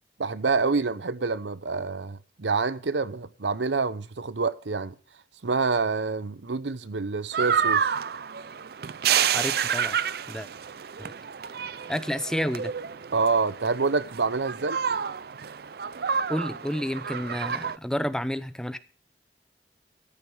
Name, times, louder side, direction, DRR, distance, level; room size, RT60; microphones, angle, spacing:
voice 1, 0.2-4.9 5.4-7.9 13.1-14.8, right 4 dB, 90° right, 0.8 m, -27 dB
sound 1, 7.3-17.8, right 7 dB, 60° right, 0.5 m, -29 dB
voice 2, 9.3-10.0 10.3-10.5 11.0-11.1 11.9-12.7 16.3-18.8, equal, 5° left, 0.6 m, -30 dB
13.5 x 9.6 x 5.4 m
head